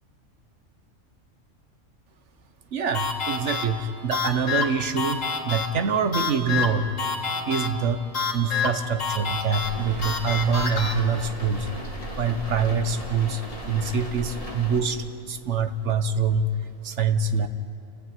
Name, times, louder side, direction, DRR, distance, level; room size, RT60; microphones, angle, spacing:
voice 1, 2.7-6.9 7.5-8.0 8.3-11.7 12.2-16.5 16.8-17.5, right 5 dB, 65° right, 9 dB, 1.4 m, -25 dB
sound 1, 2.9-10.9, left 4 dB, 80° left, 2.3 m, -29 dB
sound 2, 9.5-14.8, left 1 dB, 25° left, 2.7 m, -37 dB
28.5 x 15.5 x 9.1 m, 2.8 s
omnidirectional pair, 1.3 m